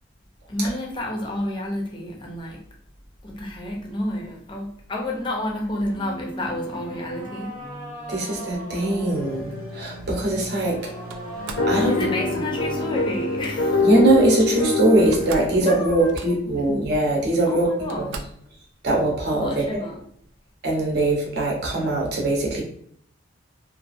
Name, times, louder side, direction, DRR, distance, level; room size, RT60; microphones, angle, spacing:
voice 1, 0.5-2.6 3.2-7.6 11.9-13.8 15.5-16.8 17.4-18.3 19.4-20.0, left 1 dB, 25° left, -1 dB, 0.5 m, -30 dB
sound 1, 5.9-13.9, equal, 20° right, 0.9 m, -38 dB
voice 2, 8.1-10.8 11.7-12.4 13.8-17.7 18.0-18.2 18.8-19.8 20.6-22.6, right 2 dB, 55° right, -2 dB, 0.8 m, -22 dB
sound 2, 9.1-15.6, left 4 dB, 90° left, 0.6 m, -25 dB
Slam, 11.1-11.8 13.1-13.6 14.6-14.7 15.0-15.6 15.9-16.6 17.3-17.4 17.9-18.5, right 4 dB, 70° right, 0.3 m, -38 dB
2.7 x 2.5 x 2.4 m, 0.65 s
head